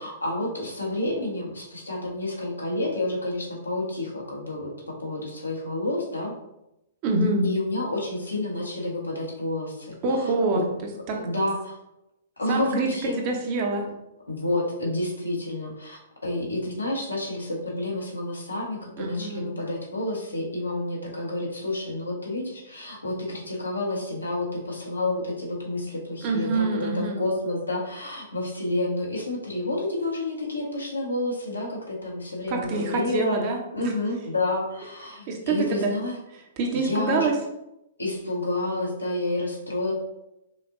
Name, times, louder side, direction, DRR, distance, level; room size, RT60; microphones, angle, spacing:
voice 1, 0.0-4.7 5.0-6.3 7.4-9.9 10.2-10.6 11.1-11.8 12.4-13.2 14.3-33.4 33.7-36.2 36.7-37.3 38.0-39.9, left 2 dB, 85° left, -2 dB, 1.2 m, -29 dB
voice 2, 7.0-7.5 10.0-10.6 11.1-11.2 12.5-13.9 19.0-19.5 26.2-27.2 32.5-33.6 35.3-35.9 36.6-37.3, right 3 dB, 40° right, 1 dB, 0.8 m, -25 dB
5.7 x 2.6 x 2.6 m, 0.87 s
figure-of-eight pair, 115°, 0 cm